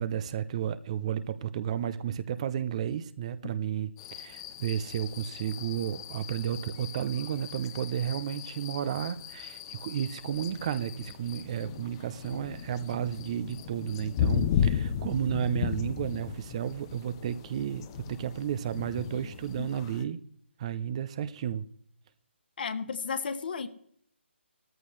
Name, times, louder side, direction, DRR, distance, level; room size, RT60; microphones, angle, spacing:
voice 1, 0.0-20.2 20.6-21.7, right 9 dB, 30° right, 0.6 m, -32 dB
sound 1, 4.0-20.0, left 9 dB, 25° left, 0.6 m, -36 dB
voice 2, 22.6-23.7, left 5 dB, 50° left, 1.3 m, -33 dB
17.0 x 14.0 x 3.2 m
figure-of-eight pair, 150°, 7 cm